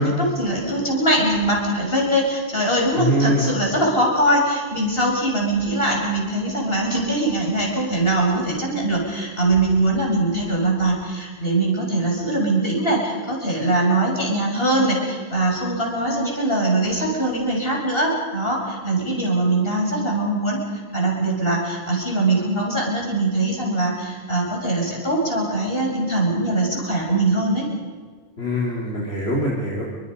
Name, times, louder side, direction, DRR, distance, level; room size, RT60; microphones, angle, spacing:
voice 1, 0.0-20.6 20.9-27.7, right 2 dB, 65° left, -1 dB, 6.7 m, -22 dB
voice 2, 2.9-3.5 28.4-29.8, equal, 85° left, -5 dB, 3.9 m, -22 dB
29.0 x 24.0 x 5.5 m, 1.5 s
omnidirectional pair, 1.1 m